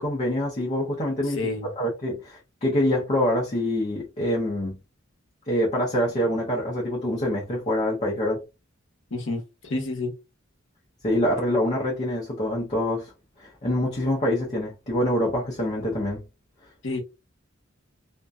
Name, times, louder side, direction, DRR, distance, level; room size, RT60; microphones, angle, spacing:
voice 1, 0.0-4.8 5.5-8.4 11.0-13.1 13.4-16.2, left 1 dB, 35° left, 0.7 m, -25 dB
voice 2, 1.4-1.7 9.1-9.4 9.7-10.1 16.8-17.0, left 2 dB, 65° left, 0.8 m, -28 dB
2.6 x 2.1 x 2.3 m
head